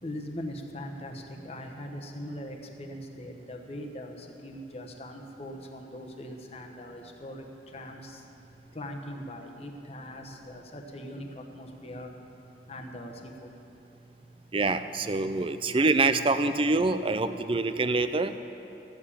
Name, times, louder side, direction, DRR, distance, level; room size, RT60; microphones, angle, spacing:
voice 1, 0.0-7.4 7.7-8.2 8.7-12.1 12.7-13.5, left 1 dB, 35° left, 3 dB, 1.1 m, -41 dB
voice 2, 14.5-18.3, right 3 dB, 30° right, 11 dB, 0.4 m, -25 dB
14.0 x 7.1 x 8.7 m, 2.9 s
head